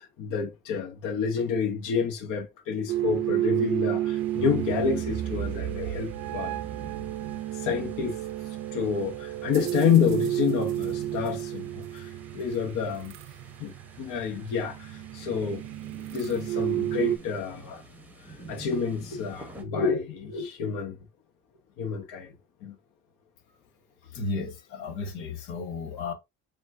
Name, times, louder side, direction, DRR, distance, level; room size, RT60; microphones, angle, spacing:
voice 1, 0.0-6.6 7.5-8.2 8.7-13.1 13.6-15.6 16.1-17.8 18.3-21.0 21.8-22.3 22.6-22.8, left 7 dB, 55° left, 1.0 m, -29 dB
sound 1, 2.9-17.2, right 13 dB, 45° right, 0.5 m, -31 dB
sound 2, 4.2-19.6, right 2 dB, 5° right, 0.9 m, -49 dB
voice 2, 24.1-26.1, left 4 dB, 75° left, 1.4 m, -33 dB
7.1 x 2.4 x 2.6 m
cardioid pair, 130°, 37 cm